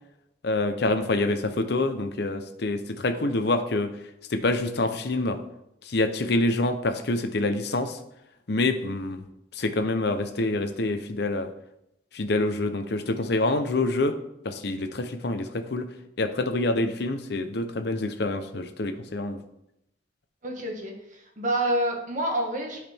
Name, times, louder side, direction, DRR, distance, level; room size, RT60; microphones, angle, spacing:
voice 1, 0.4-3.9 4.3-5.4 5.8-8.0 8.5-9.2 9.5-11.5 12.1-14.1 14.4-15.9 16.2-19.4, left 2 dB, 65° left, 8 dB, 0.8 m, -26 dB
voice 2, 20.4-22.8, right 1 dB, 45° right, 1 dB, 1.6 m, -28 dB
12.0 x 4.9 x 3.5 m, 0.83 s
head